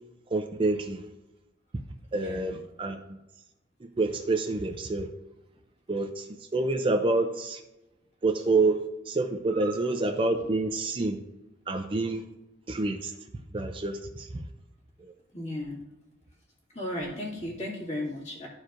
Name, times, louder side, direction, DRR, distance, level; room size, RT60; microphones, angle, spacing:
voice 1, 0.3-1.0 2.1-3.0 3.8-5.1 5.9-6.3 6.5-7.6 8.2-8.8 9.1-11.2 11.7-12.2 12.7-13.1 13.5-14.4 15.0-15.1, right 3 dB, 25° right, 5 dB, 0.4 m, -27 dB
voice 2, 2.1-2.5 9.5-9.8 10.4-10.5 15.3-15.8 16.7-18.5, left 1 dB, 35° left, -3 dB, 2.0 m, -35 dB
12.5 x 4.5 x 2.5 m, 0.99 s
head